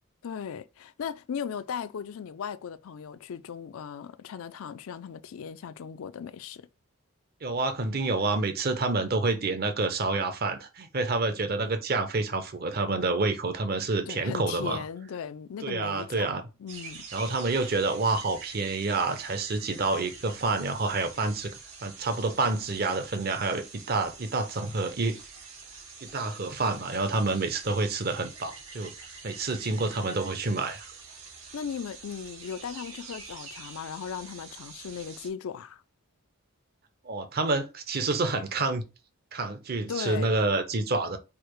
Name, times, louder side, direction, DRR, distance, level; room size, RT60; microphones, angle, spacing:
voice 1, 0.2-6.7 14.1-17.1 31.5-35.8 39.9-40.4, left 7 dB, 70° left, 0.4 m, -37 dB
voice 2, 7.4-14.8 15.6-16.4 17.1-21.5 21.8-25.2 26.0-28.9 29.2-30.9 37.0-38.8 39.3-41.2, right 3 dB, 45° right, 0.7 m, -28 dB
sound 1, 16.7-35.3, right 4 dB, 85° right, 2.4 m, -46 dB
4.7 x 2.1 x 4.6 m
head